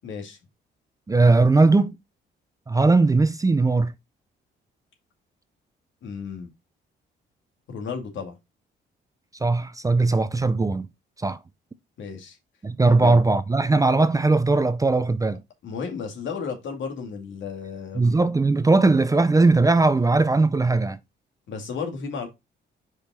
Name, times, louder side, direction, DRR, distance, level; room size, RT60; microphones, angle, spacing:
voice 1, 0.0-0.4 6.0-6.5 7.7-8.3 12.0-12.4 12.9-13.2 15.6-18.2 21.5-22.3, left 6 dB, 70° left, 2.2 m, -33 dB
voice 2, 1.1-1.9 2.7-3.9 9.4-10.9 11.2-11.4 12.6-15.4 18.0-21.0, right 3 dB, 15° right, 0.5 m, -19 dB
5.2 x 4.9 x 4.1 m
cardioid pair, 90°, 20 cm